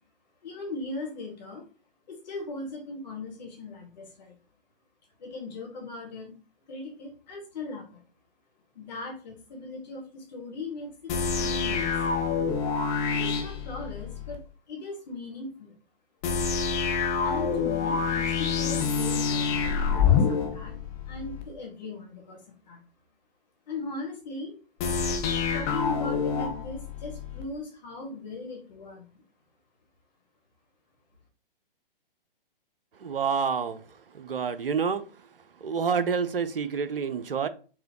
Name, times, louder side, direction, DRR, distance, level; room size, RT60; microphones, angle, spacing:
voice 1, 0.4-1.6 2.1-4.4 5.2-6.3 6.7-8.0 8.8-11.9 13.1-14.4 14.7-15.7 17.2-20.8 21.1-22.8 23.7-24.5 25.5-29.2, left 3 dB, 45° left, -1 dB, 1.9 m, -39 dB
sound 1, 11.1-14.4 16.2-21.4 24.8-27.4, left 6 dB, 15° left, 0.5 m, -27 dB
voice 2, 33.0-33.8 34.1-35.0 35.6-37.5, right 6 dB, 75° right, 11 dB, 0.6 m, -28 dB
4.7 x 3.6 x 2.9 m, 0.38 s
figure-of-eight pair, 125°, 29 cm